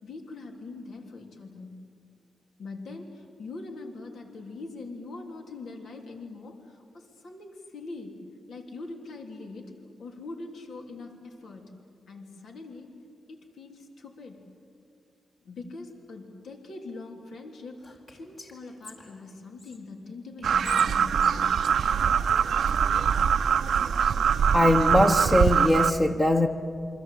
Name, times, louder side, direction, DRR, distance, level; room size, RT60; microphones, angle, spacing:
voice 1, 0.0-1.8 2.6-8.2 8.5-9.7 10.0-11.7 12.1-12.9 13.3-14.5 15.4-21.7, left 3 dB, 75° left, 2 dB, 3.4 m, -42 dB
Whispering, 17.8-19.8 20.4-22.5, left 3 dB, 50° left, 4.2 m, -47 dB
sound 1, 20.4-25.9, right 7 dB, 75° right, 0.6 m, -23 dB
voice 2, 24.5-26.5, left 1 dB, 20° left, 2 dB, 1.2 m, -21 dB
28.0 x 24.5 x 8.4 m, 2.4 s
cardioid pair, 110°, 0 cm